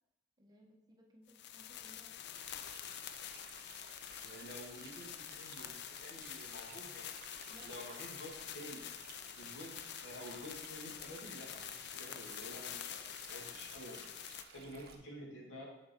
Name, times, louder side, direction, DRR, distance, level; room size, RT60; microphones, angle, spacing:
voice 1, 0.4-2.4 7.5-7.7, equal, 20° right, 0 dB, 0.9 m, -62 dB
sound 1, 1.3-14.4, left 10 dB, 60° left, 0.4 m, -47 dB
Stream, 2.3-14.9, right 5 dB, 55° right, 0.7 m, -56 dB
voice 2, 4.1-7.1 7.6-8.8 9.4-13.0 13.2-14.0 14.5-15.7, equal, 75° left, -2 dB, 1.9 m, -50 dB
8.0 x 4.4 x 4.4 m, 0.92 s
head